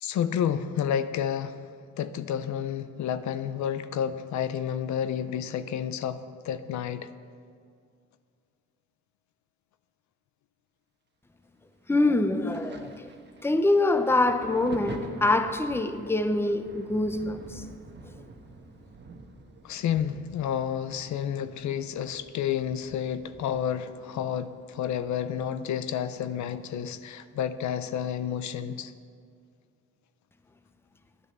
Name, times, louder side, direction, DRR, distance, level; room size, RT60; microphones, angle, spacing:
voice 1, 0.0-1.7 2.0-7.1 19.6-28.9, left 9 dB, 70° left, 0.6 m, -30 dB
voice 2, 11.9-12.9 13.4-17.6, left 2 dB, 10° left, 0.7 m, -25 dB
Thunder, 12.5-25.8 26.1-27.4 28.3-28.4, right 3 dB, 35° right, 1.2 m, -47 dB
9.7 x 9.4 x 6.7 m
cardioid pair, 90°, 30 cm